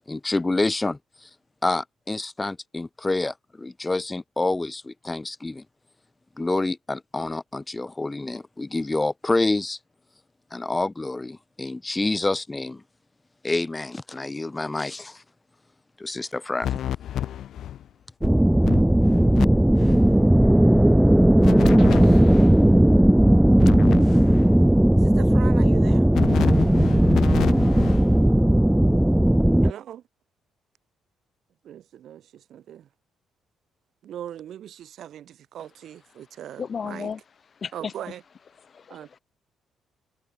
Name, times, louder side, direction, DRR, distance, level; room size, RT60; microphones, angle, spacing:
voice 1, 0.1-1.3 1.6-5.6 6.4-9.8 10.5-12.8 13.4-15.2 16.0-16.7, left 2 dB, 15° left, 3.8 m, -27 dB
sound 1, 16.6-17.8 18.2-18.3 18.6-19.5 19.7-20.1 21.4-22.6 23.6-24.6 26.1-28.1, left 11 dB, 70° left, 3.7 m, -30 dB
sound 2, 18.2-29.7, right 1 dB, 5° right, 0.5 m, -17 dB
voice 2, 25.0-26.1 29.6-30.0 31.6-32.9 34.0-37.1 37.7-38.2 38.9-39.1, right 10 dB, 70° right, 7.6 m, -39 dB
voice 3, 36.6-37.2 37.6-37.9 38.6-39.2, left 6 dB, 45° left, 7.8 m, -33 dB
cardioid pair, 90°, 0 cm